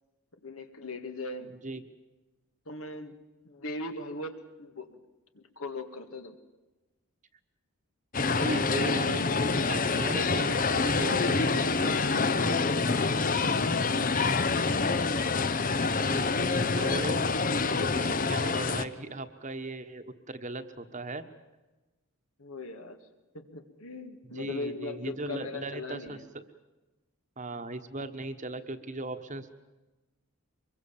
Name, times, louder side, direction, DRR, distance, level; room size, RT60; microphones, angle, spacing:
voice 1, 0.4-1.6 2.7-3.2 3.4-5.0 5.3-6.4 12.4-14.2 22.4-23.0 23.3-26.2, left 2 dB, 70° left, 7 dB, 2.1 m, -40 dB
sound 1, 8.1-18.8, left 4 dB, 40° left, 0.9 m, -26 dB
voice 2, 8.2-9.2 9.6-11.9 15.9-17.2 17.7-21.2 24.3-26.4 27.4-29.5, right 2 dB, 35° right, 9 dB, 1.3 m, -37 dB
24.5 x 22.5 x 7.3 m, 1.1 s
head